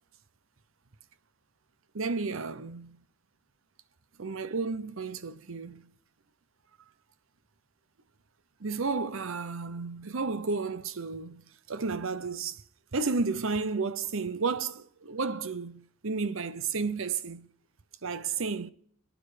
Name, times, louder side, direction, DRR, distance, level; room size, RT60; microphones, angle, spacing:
voice 1, 1.9-3.0 4.2-5.9 8.6-12.6 12.9-17.5 18.0-18.7, right 4 dB, 65° right, 0.8 m, -32 dB
27.5 x 10.0 x 5.0 m
head